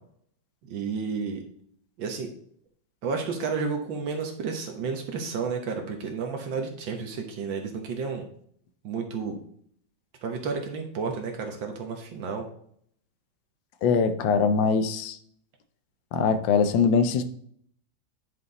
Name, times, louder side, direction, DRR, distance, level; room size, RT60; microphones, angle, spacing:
voice 1, 0.6-1.5 2.0-2.3 3.0-8.2 8.8-9.4 10.2-12.4, right 5 dB, 85° right, 4 dB, 1.8 m, -31 dB
voice 2, 13.8-15.2 16.1-17.2, left 5 dB, 80° left, 10 dB, 1.5 m, -22 dB
9.5 x 5.8 x 3.9 m, 0.65 s
omnidirectional pair, 2.0 m